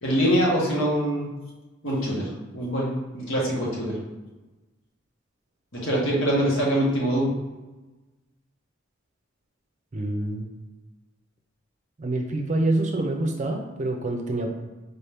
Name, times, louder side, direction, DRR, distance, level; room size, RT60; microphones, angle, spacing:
voice 1, 0.0-1.3 1.8-4.0 5.7-7.3, equal, 75° left, -4 dB, 1.4 m, -24 dB
voice 2, 9.9-10.5 12.0-14.5, right 2 dB, 35° right, 3 dB, 0.5 m, -26 dB
4.2 x 2.8 x 3.4 m, 1.2 s
head